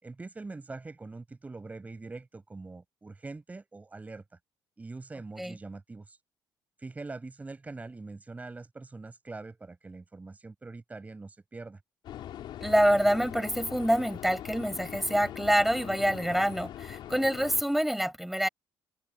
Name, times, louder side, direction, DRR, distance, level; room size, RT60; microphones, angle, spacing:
voice 1, 0.0-4.2 4.8-6.2 6.8-11.8, right 3 dB, 20° right, 5.4 m, -43 dB
sound 1, 12.0-17.6, left 11 dB, 70° left, 3.3 m, -42 dB
voice 2, 12.6-18.5, equal, ahead, 5.0 m, -26 dB
cardioid pair, 135°, 9 cm